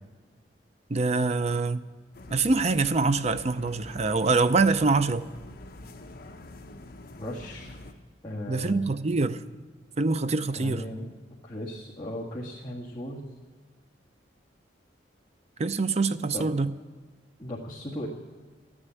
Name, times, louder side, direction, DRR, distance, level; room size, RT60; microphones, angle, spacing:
voice 1, 0.9-1.9 2.3-5.3 8.5-9.4 10.0-10.8 15.6-16.7, right 3 dB, 35° right, 0.5 m, -25 dB
sound 1, 2.1-7.9, left 2 dB, 55° left, 0.9 m, -46 dB
voice 2, 7.2-7.8 8.2-8.9 10.5-11.1 11.4-13.2 16.3-16.4 17.4-18.1, left 1 dB, 25° left, 1.8 m, -36 dB
13.0 x 9.8 x 9.4 m
head